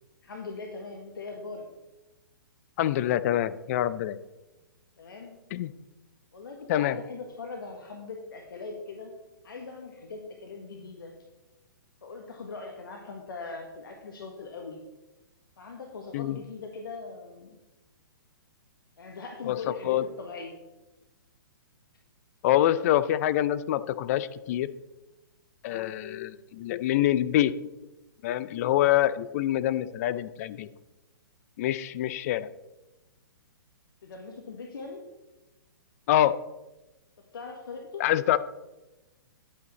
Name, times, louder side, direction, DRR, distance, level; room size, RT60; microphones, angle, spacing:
voice 1, 0.2-1.7 5.0-5.4 6.3-9.1 9.4-11.2 12.0-14.8 15.6-17.6 19.0-20.6 25.7-26.0 34.0-35.0 37.2-38.1, left 4 dB, 70° left, 2 dB, 1.5 m, -41 dB
voice 2, 2.8-4.2 5.5-5.7 6.7-7.0 16.1-16.4 19.5-20.0 22.4-24.7 25.6-27.5 28.2-30.7 31.6-32.5 36.1-36.3 38.0-38.4, left 12 dB, 45° left, 14 dB, 0.5 m, -25 dB
10.5 x 8.6 x 4.1 m, 1.0 s
hypercardioid pair, 125°, 12 cm